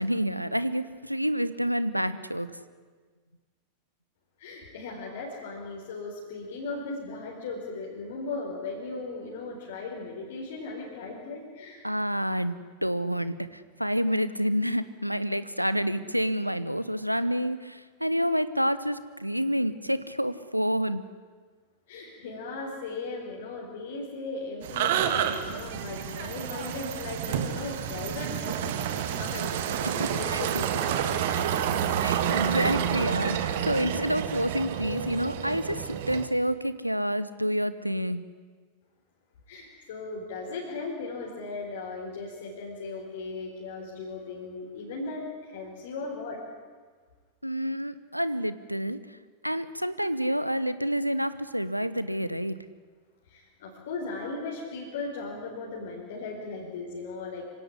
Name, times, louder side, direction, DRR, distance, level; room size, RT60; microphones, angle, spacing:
voice 1, 0.0-2.5 11.8-21.0 29.8-30.4 32.0-38.2 47.4-49.0 49.4-52.6, equal, 90° right, 15 dB, 1.0 m, -28 dB
voice 2, 4.4-11.8 21.9-31.5 39.5-46.4 53.3-57.5, left 3 dB, 60° left, -3 dB, 4.6 m, -37 dB
sound 1, 24.6-36.3, right 9 dB, 55° right, 1.9 m, -29 dB
25.0 x 17.0 x 9.9 m, 1.5 s
figure-of-eight pair, 90°, 0 cm